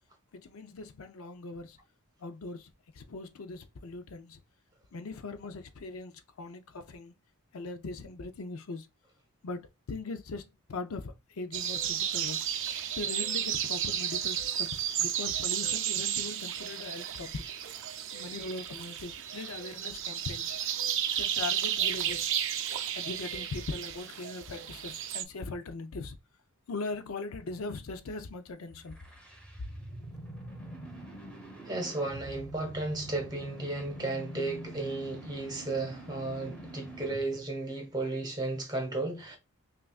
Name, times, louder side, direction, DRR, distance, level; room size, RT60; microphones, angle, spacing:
voice 1, 0.3-1.8 2.2-2.7 2.9-4.4 4.9-7.1 7.5-8.9 9.4-12.5 12.9-17.5 18.1-20.5 21.2-22.3 22.9-26.2 26.7-29.0, left 3 dB, 65° left, 0.5 m, -40 dB
sound 1, 11.5-25.2, right 10 dB, 60° right, 0.5 m, -33 dB
sound 2, 28.8-37.4, right 1 dB, 5° left, 1.1 m, -45 dB
voice 2, 31.6-39.4, right 2 dB, 20° right, 1.1 m, -34 dB
5.7 x 2.5 x 2.3 m
head